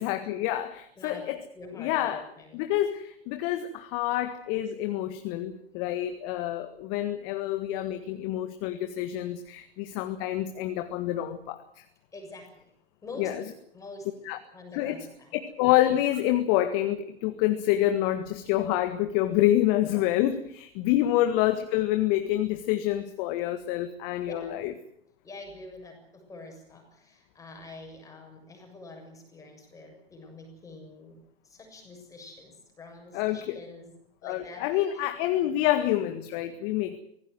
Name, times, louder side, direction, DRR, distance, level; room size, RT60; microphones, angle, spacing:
voice 1, 0.0-1.4 1.8-2.2 2.5-11.8 13.2-13.4 14.3-14.4 14.7-15.0 15.3-24.7 33.1-33.6 34.2-37.0, left 13 dB, 30° left, 8 dB, 1.7 m, -27 dB
voice 2, 1.0-1.3 1.5-2.7 4.1-4.2 12.1-12.5 13.0-15.4 21.0-21.1 24.1-24.7 25.2-33.9 34.2-35.0, left 2 dB, 10° left, 3 dB, 7.1 m, -46 dB
25.0 x 18.0 x 7.8 m, 0.69 s
figure-of-eight pair, 120°, 31 cm